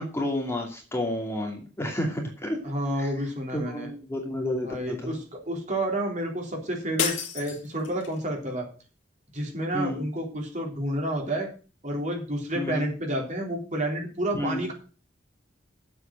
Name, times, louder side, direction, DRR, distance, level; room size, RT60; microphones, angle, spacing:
voice 1, 0.0-2.6 3.0-3.1 3.5-5.1 9.7-10.0 12.5-12.9 14.3-14.6, left 1 dB, 15° left, 1 dB, 2.6 m, -30 dB
voice 2, 2.6-3.9 4.6-8.6 9.3-11.5 11.8-14.7, right 1 dB, 40° right, 1 dB, 3.7 m, -30 dB
sound 1, 7.0-8.2, left 7 dB, 85° left, 1.8 m, -31 dB
8.3 x 7.8 x 7.6 m, 0.37 s
head